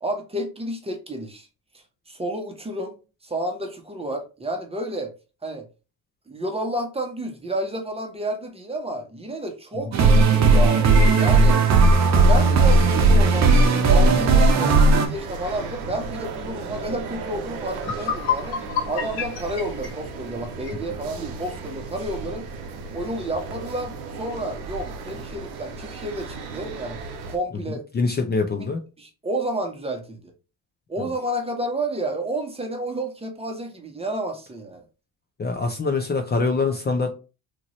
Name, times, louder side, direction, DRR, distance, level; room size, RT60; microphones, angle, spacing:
voice 1, 0.0-1.5 2.1-3.0 3.2-5.1 5.4-5.7 6.3-11.6 12.3-22.4 22.9-27.0 27.3-27.8 28.6-28.7 29.0-30.3 30.9-34.8, right 1 dB, 15° right, 0.8 m, -30 dB
sound 1, 9.9-15.1, right 3 dB, 45° right, 0.8 m, -16 dB
sound 2, 12.0-27.4, right 4 dB, 85° right, 0.8 m, -35 dB
sound 3, 17.3-17.4 17.7-20.8, left 7 dB, 85° left, 1.1 m, -29 dB
voice 2, 27.9-28.8 35.4-37.1, left 4 dB, 25° left, 0.6 m, -24 dB
3.0 x 2.5 x 3.0 m
supercardioid pair, 75°, 38 cm